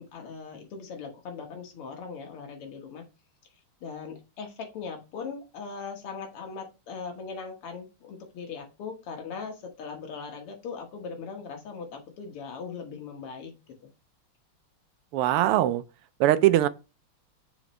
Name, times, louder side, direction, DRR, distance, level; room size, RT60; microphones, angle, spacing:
voice 1, 0.0-3.0 3.8-13.7, left 5 dB, 80° left, 2.3 m, -39 dB
voice 2, 15.1-15.8 16.2-16.7, right 13 dB, 85° right, 1.6 m, -21 dB
7.1 x 5.0 x 3.2 m
omnidirectional pair, 2.4 m